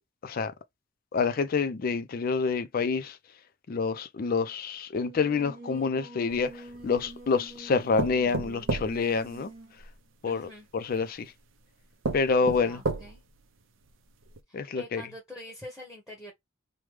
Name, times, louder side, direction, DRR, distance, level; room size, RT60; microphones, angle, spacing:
voice 1, 0.2-0.5 1.1-3.2 3.7-9.5 10.2-10.5 10.7-11.3 12.1-12.8 14.5-15.0, left 4 dB, 45° left, 0.4 m, -27 dB
Singing, 4.9-9.8, right 1 dB, 45° right, 1.2 m, -47 dB
sound 1, 6.3-7.2 8.0-9.9 10.9-11.0 11.6-11.7 12.0-13.4 13.9-14.0 14.3-14.4, right 3 dB, 70° right, 0.6 m, -33 dB
voice 2, 10.2-10.7 12.4-13.2 14.5-16.3, equal, ahead, 0.9 m, -45 dB
3.2 x 2.1 x 3.1 m
head